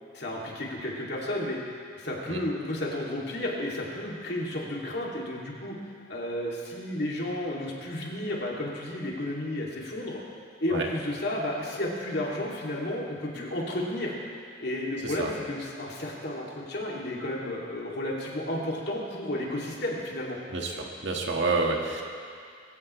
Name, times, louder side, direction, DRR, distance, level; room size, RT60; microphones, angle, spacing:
voice 1, 0.1-1.6 2.0-5.7 6.1-10.2 10.6-14.1 14.6-20.4, left 1 dB, 55° left, -3 dB, 2.8 m, -32 dB
voice 2, 20.5-22.0, right 3 dB, 60° right, 0 dB, 1.8 m, -29 dB
22.5 x 16.0 x 3.3 m, 2.2 s
head